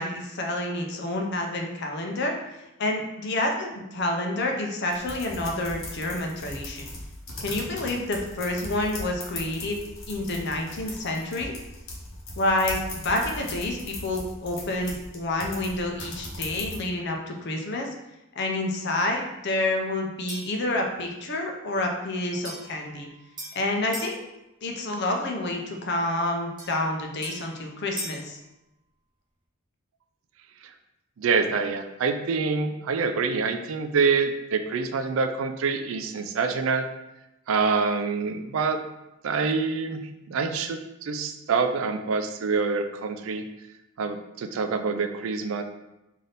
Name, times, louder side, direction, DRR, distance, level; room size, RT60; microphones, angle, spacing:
voice 1, 0.0-2.4 2.8-6.9 7.4-9.8 10.1-11.5 12.4-17.9 18.4-23.1 23.5-24.1 24.6-28.4, left 2 dB, 55° left, 2 dB, 0.6 m, -28 dB
sound 1, 4.9-16.8, left 2 dB, 70° left, 0.9 m, -38 dB
sound 2, 20.3-20.6 22.4-24.2 26.6-28.3, equal, 20° right, 1.0 m, -40 dB
voice 2, 31.2-36.9 37.5-38.8 39.2-43.5 44.0-45.6, right 5 dB, 75° right, 8 dB, 0.4 m, -26 dB
3.3 x 2.7 x 3.9 m, 0.92 s
head